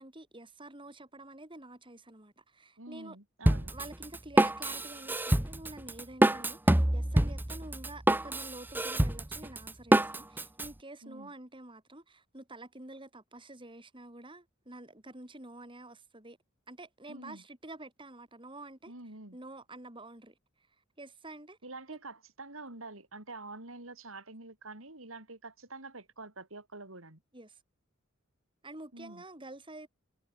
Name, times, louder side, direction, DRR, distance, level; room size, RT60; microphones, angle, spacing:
voice 1, 0.0-3.2 3.7-16.4 16.7-18.9 19.3-20.4 21.0-21.6 21.9-22.0 27.3-27.6 28.6-29.9, right 2 dB, 25° right, 5.2 m, -48 dB
voice 2, 2.8-3.7 11.0-11.3 17.1-17.4 18.9-19.4 21.6-27.2 28.9-29.2, right 2 dB, 80° right, 6.0 m, -47 dB
Drum kit, 3.5-10.7, right 1 dB, 10° right, 0.6 m, -26 dB
head